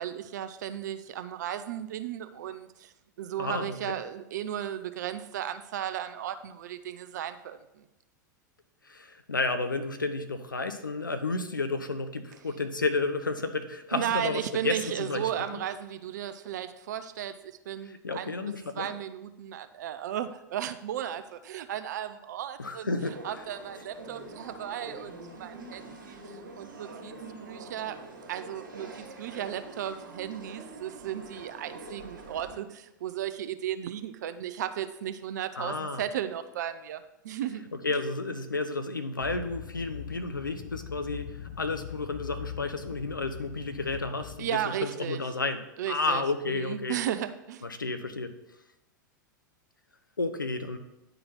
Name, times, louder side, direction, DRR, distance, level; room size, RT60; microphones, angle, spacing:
voice 1, 0.0-2.9 3.2-7.8 13.9-17.3 17.7-18.3 18.8-22.9 23.2-27.1 27.4-28.0 28.3-37.7 44.4-45.2 45.8-47.6, right 10 dB, 60° right, 10 dB, 0.5 m, -35 dB
voice 2, 3.4-3.9 8.9-15.3 18.0-18.9 22.6-23.2 35.6-36.0 37.8-44.5 44.8-45.6 45.9-47.0 47.6-48.3 50.2-50.8, left 3 dB, 85° left, 9 dB, 0.7 m, -31 dB
sound 1, 23.1-32.6, right 2 dB, 80° right, 1.5 m, -45 dB
sound 2, 39.2-44.4, left 10 dB, 60° left, 1.0 m, -42 dB
10.0 x 3.9 x 4.3 m, 0.89 s
figure-of-eight pair, 95°, 11 cm